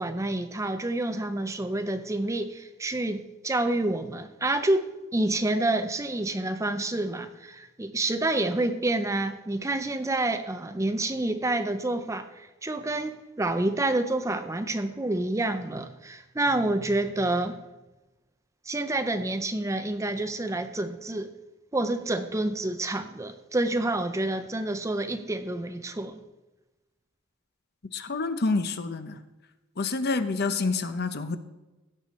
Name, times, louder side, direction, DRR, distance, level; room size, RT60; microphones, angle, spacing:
voice 1, 0.0-17.6 18.7-21.3 21.7-26.2, right 2 dB, 15° right, 9 dB, 0.5 m, -28 dB
voice 2, 27.9-29.2 29.8-31.4, left 3 dB, 50° left, 10 dB, 0.7 m, -28 dB
16.0 x 6.8 x 4.2 m, 1.1 s
head